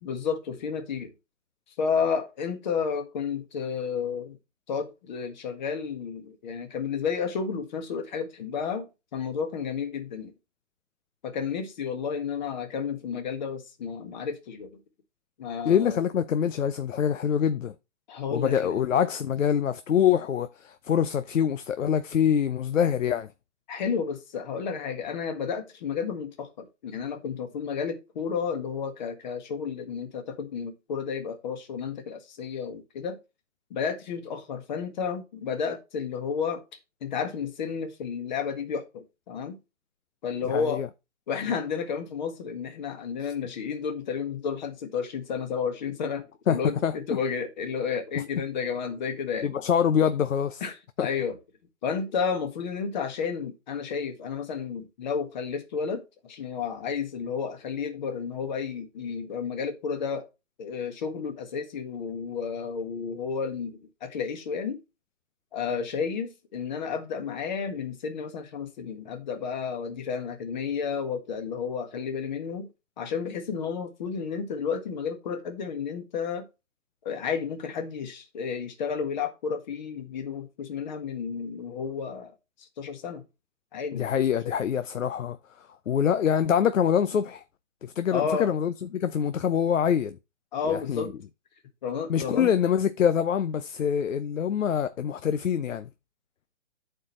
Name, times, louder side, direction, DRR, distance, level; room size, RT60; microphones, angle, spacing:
voice 1, 0.0-1.1 1.8-4.4 4.7-10.3 11.2-14.7 15.4-16.0 18.1-18.7 23.7-33.2 33.7-36.6 37.0-39.6 40.2-40.8 41.3-49.5 50.6-51.4 51.8-60.3 60.6-64.8 65.5-72.7 73.0-76.5 77.0-82.3 82.6-83.2 83.7-84.1 88.1-88.5 90.5-91.1 91.8-92.5, left 6 dB, 35° left, 1.6 m, -31 dB
voice 2, 15.6-17.7 18.3-23.3 40.4-40.9 46.5-46.9 48.2-48.3 49.4-50.6 51.0-51.1 83.9-87.4 87.8-90.2 90.7-91.1 92.1-95.9, left 8 dB, 80° left, 0.8 m, -25 dB
14.0 x 4.6 x 3.1 m
hypercardioid pair, 155°, 38 cm